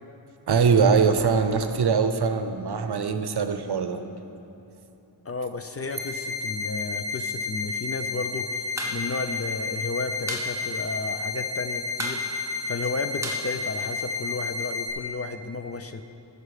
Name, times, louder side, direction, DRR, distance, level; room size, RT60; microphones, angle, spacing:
voice 1, 0.5-4.0, right 5 dB, 60° right, 8 dB, 0.7 m, -22 dB
voice 2, 5.3-8.5 8.9-12.2 12.7-16.0, left 3 dB, 35° left, 8 dB, 0.4 m, -33 dB
sound 1, 5.9-14.9, left 4 dB, 85° left, 2.1 m, -31 dB
sound 2, 8.6-9.0 9.2-9.3 9.6-10.5 10.8-10.9 11.2-11.6 11.9-14.3, right 1 dB, 5° right, 1.2 m, -35 dB
14.5 x 6.6 x 4.9 m, 3.0 s
wide cardioid pair, 105°, 44 cm